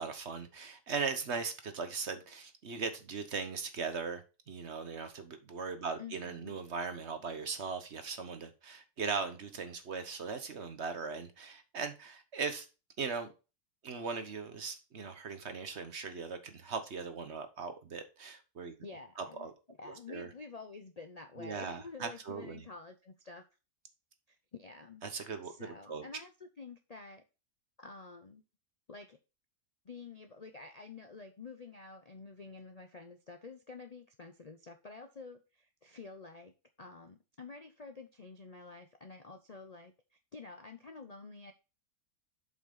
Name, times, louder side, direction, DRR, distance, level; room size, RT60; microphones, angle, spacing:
voice 1, 0.0-12.7 13.0-13.3 13.8-18.7 19.2-19.5 19.8-20.3 21.4-22.7 25.0-26.0, right 5 dB, 50° right, 1.2 m, -39 dB
voice 2, 6.0-6.5 18.8-23.4 24.3-25.0 25.4-27.2 27.8-28.4 28.9-29.2 29.8-36.5 36.8-41.5, left 4 dB, 40° left, 0.5 m, -49 dB
7.3 x 5.6 x 3.9 m
omnidirectional pair, 1.6 m